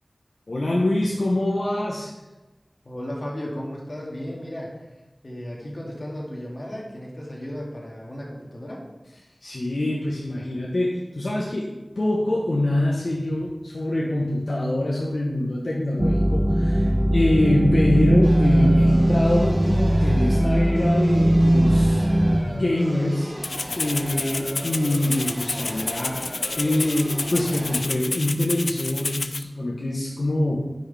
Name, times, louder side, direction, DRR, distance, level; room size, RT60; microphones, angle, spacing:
voice 1, 0.5-2.1 9.4-11.7 12.0-16.9 17.1-22.1 22.4-23.3 23.7-30.6, left 1 dB, 70° left, -4 dB, 1.2 m, -24 dB
voice 2, 2.8-4.9 5.2-8.8 16.8-17.1, equal, 55° left, -3 dB, 2.4 m, -35 dB
sound 1, 16.0-22.4, right 1 dB, 25° right, 0.8 m, -19 dB
sound 2, 18.2-27.8, equal, 40° right, 2.6 m, -37 dB
Rattle (instrument), 23.4-29.4, left 3 dB, 90° left, 0.4 m, -30 dB
9.8 x 6.4 x 3.5 m, 1.1 s
wide cardioid pair, 50°, 0 cm